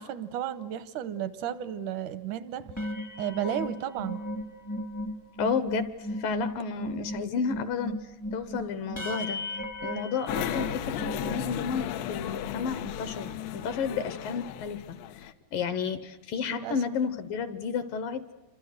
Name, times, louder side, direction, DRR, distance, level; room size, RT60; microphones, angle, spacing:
voice 1, 0.0-2.7 3.2-4.2 16.5-16.8, right 10 dB, 75° right, 14 dB, 1.8 m, -33 dB
sound 1, 2.7-12.1 12.6-12.8 13.0-13.3, left 1 dB, 15° left, 0.6 m, -36 dB
voice 2, 5.4-7.9 8.3-9.4 9.8-18.2, left 6 dB, 70° left, 12 dB, 2.4 m, -32 dB
sound 2, 10.3-15.3, left 10 dB, 90° left, 3.1 m, -35 dB
28.0 x 25.5 x 6.6 m, 1.2 s
omnidirectional pair, 4.7 m